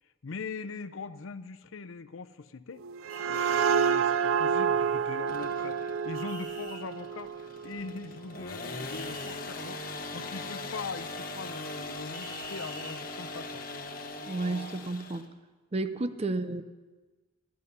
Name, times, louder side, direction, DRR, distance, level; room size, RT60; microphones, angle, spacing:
voice 1, 0.2-2.8 3.3-13.6, left 4 dB, 85° left, 11 dB, 0.6 m, -41 dB
sound 1, 2.8-8.3, right 7 dB, 90° right, 0.4 m, -29 dB
sound 2, 3.1-3.9 6.1-6.8 8.9-9.3 12.1-13.0, equal, 65° right, 3.2 m, -46 dB
sound 3, 5.3-15.3, left 2 dB, 45° left, 1.2 m, -40 dB
voice 2, 14.3-15.3 15.7-16.6, right 2 dB, 30° right, 11 dB, 0.6 m, -31 dB
14.5 x 12.5 x 5.5 m, 1.3 s
head